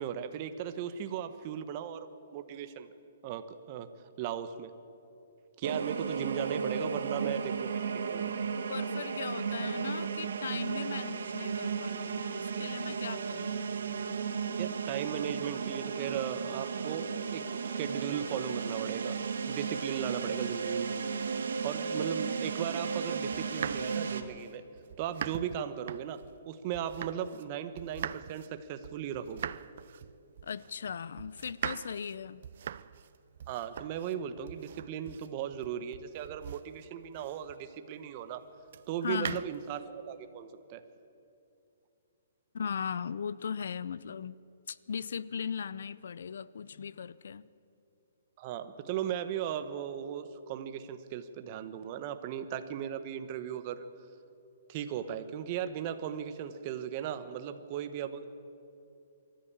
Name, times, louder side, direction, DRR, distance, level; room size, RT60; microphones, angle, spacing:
voice 1, 0.0-2.9 3.2-3.9 4.2-4.7 5.6-8.5 14.6-19.2 19.4-21.0 21.6-24.6 25.0-29.5 33.5-38.4 38.9-40.8 48.4-53.9 54.7-58.3, right 9 dB, 30° right, 1.1 m, -37 dB
sound 1, 5.6-24.2, right 5 dB, 80° right, 1.7 m, -34 dB
voice 2, 8.7-13.6 30.4-32.4 39.0-39.4 42.5-44.4 44.7-47.5, left 6 dB, 70° left, 0.6 m, -38 dB
sound 2, 23.3-27.5 27.8-37.7 38.7-39.8, right 9 dB, 55° right, 0.5 m, -42 dB
22.5 x 13.5 x 8.8 m
hypercardioid pair, 160°, 0 cm